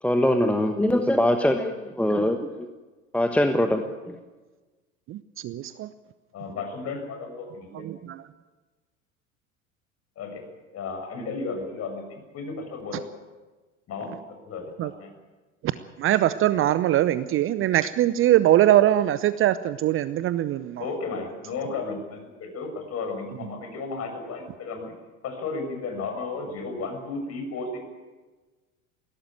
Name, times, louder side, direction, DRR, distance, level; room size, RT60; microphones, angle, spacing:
voice 1, 0.0-2.7 3.1-4.2, left 1 dB, 5° left, 6 dB, 1.3 m, -23 dB
voice 2, 5.1-5.7 7.7-8.2 14.8-14.9 15.6-15.7 16.0-20.8, right 13 dB, 30° right, 15 dB, 0.7 m, -22 dB
voice 3, 6.3-8.1 10.2-10.4 10.7-13.0 13.9-14.1 14.4-14.6 15.0-15.1 20.8-24.9 25.2-27.8, left 4 dB, 35° left, 4 dB, 6.6 m, -34 dB
20.5 x 17.0 x 9.0 m, 1.3 s
figure-of-eight pair, 75°, 41 cm